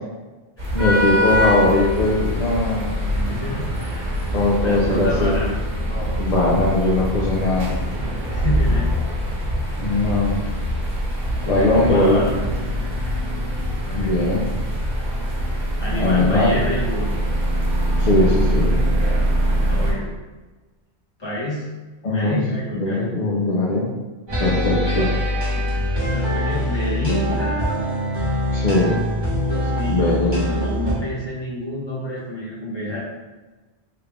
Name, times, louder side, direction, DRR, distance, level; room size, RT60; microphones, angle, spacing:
sound 1, 0.6-19.9, equal, 45° right, 1.3 m, -23 dB
voice 1, 0.7-3.0 4.3-5.4 5.9-7.7 9.8-10.4 11.5-12.3 13.9-14.5 15.9-16.6 18.0-18.8 22.0-22.5 22.7-23.9 24.4-25.2 28.5-29.0 29.9-30.7, left 2 dB, 45° left, -6 dB, 0.6 m, -20 dB
voice 2, 3.0-4.4 4.6-5.5 8.3-8.9 11.4-12.3 12.8-12.9 13.8-14.1 15.8-17.1 19.6-20.1 21.2-21.7 22.1-23.1 25.5-25.7 26.1-27.6 29.4-33.0, left 1 dB, 25° left, -7 dB, 1.1 m, -28 dB
sound 2, 24.3-30.9, equal, 25° right, 0.9 m, -23 dB
3.4 x 2.4 x 3.4 m, 1.2 s
omnidirectional pair, 1.1 m